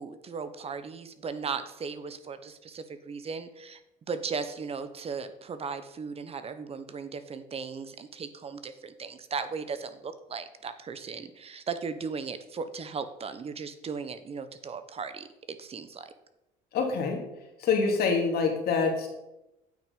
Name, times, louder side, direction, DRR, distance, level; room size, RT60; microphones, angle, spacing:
voice 1, 0.0-3.8 4.1-16.1, right 5 dB, 35° right, 11 dB, 0.8 m, -37 dB
voice 2, 16.7-17.2 17.6-19.1, left 4 dB, 65° left, 2 dB, 2.4 m, -25 dB
9.0 x 6.0 x 5.3 m, 0.91 s
cardioid pair, 110°, 17 cm